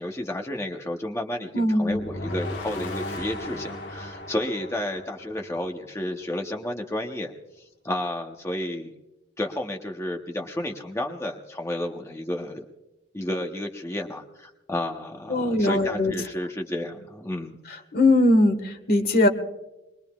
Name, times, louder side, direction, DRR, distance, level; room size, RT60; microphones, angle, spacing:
voice 1, 0.0-8.9 9.4-12.6 13.1-17.6, left 1 dB, 15° left, 2 dB, 0.9 m, -31 dB
voice 2, 1.5-2.0 15.3-16.1 17.9-19.3, left 1 dB, 50° left, 6 dB, 1.5 m, -20 dB
sound 1, 1.9-5.9, left 1 dB, 65° left, 1.4 m, -36 dB
23.5 x 22.0 x 2.4 m, 1.0 s
head